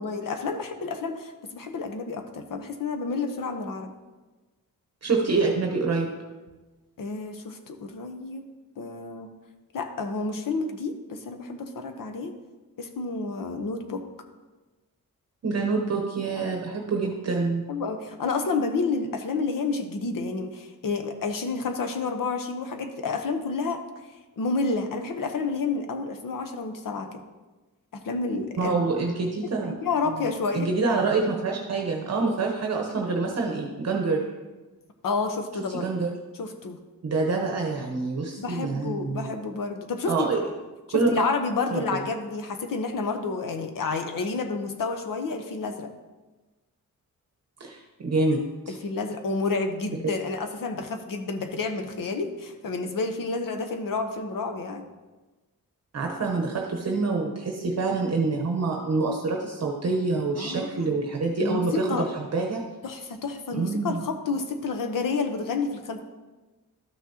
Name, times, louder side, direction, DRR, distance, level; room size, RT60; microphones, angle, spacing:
voice 1, 0.0-3.9 7.0-8.4 8.8-9.3 9.7-12.3 12.8-14.0 16.4-16.5 17.7-23.8 24.4-27.2 27.9-28.9 29.6-30.7 35.0-35.9 36.4-36.8 38.4-40.3 40.9-45.9 48.7-54.9 60.4-61.0 61.4-62.1 62.8-66.0, left 4 dB, 70° left, 6 dB, 0.9 m, -30 dB
voice 2, 5.0-6.1 15.4-17.6 28.6-29.7 30.1-30.3 30.5-34.2 35.7-36.1 37.0-39.3 40.1-40.4 40.9-41.3 41.7-41.8 47.6-48.8 55.9-61.9 62.1-62.6 63.5-64.0, right 3 dB, 45° right, 1 dB, 0.9 m, -26 dB
12.5 x 6.1 x 2.9 m, 1.2 s
wide cardioid pair, 140°, 35 cm